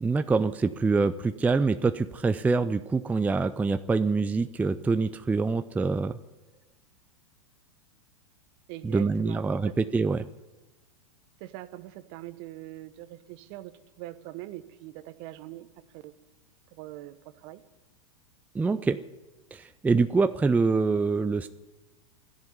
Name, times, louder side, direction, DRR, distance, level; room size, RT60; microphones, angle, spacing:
voice 1, 0.0-6.2 8.8-10.2 18.5-19.0 19.5-21.5, right 4 dB, 10° right, 11 dB, 0.5 m, -25 dB
voice 2, 8.7-9.7 11.4-15.7 15.9-16.1 16.7-17.6, right 16 dB, 50° right, 14 dB, 1.0 m, -42 dB
13.0 x 10.5 x 9.8 m, 1.2 s
hypercardioid pair, 100°, 17 cm